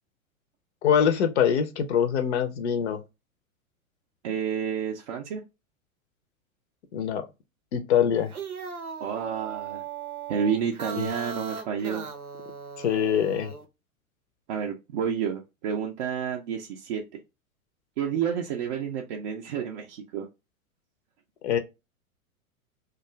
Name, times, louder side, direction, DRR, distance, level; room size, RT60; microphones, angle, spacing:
voice 1, 0.8-3.0 6.9-7.3 7.7-8.3 11.0-11.1 12.8-13.5 21.4-21.6, left 8 dB, 55° left, 0.6 m, -24 dB
voice 2, 4.2-5.4 9.0-9.8 10.3-12.1 14.5-17.0 18.0-20.3, right 7 dB, 35° right, 0.4 m, -30 dB
sound 1, 8.2-13.6, right 6 dB, 90° right, 0.6 m, -38 dB
2.4 x 2.3 x 2.9 m
figure-of-eight pair, 95°, 42 cm